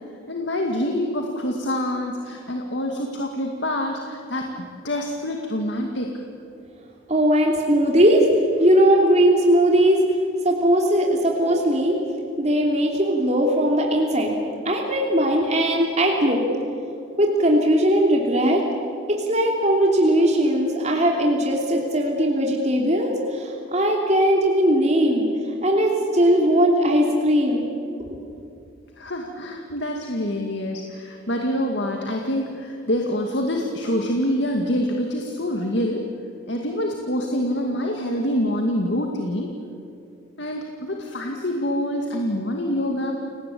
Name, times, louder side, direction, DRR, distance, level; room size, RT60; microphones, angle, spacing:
voice 1, 0.3-6.1 29.0-36.1 36.5-39.5 40.4-43.1, left 1 dB, 60° left, 2 dB, 2.2 m, -26 dB
voice 2, 7.1-8.2 8.6-10.0 10.4-12.0 12.4-14.3 14.6-16.4 17.2-18.6 19.3-25.3 25.6-27.7 28.0-28.1, right 1 dB, 35° right, 0 dB, 3.0 m, -19 dB
29.5 x 19.0 x 8.6 m, 2.7 s
head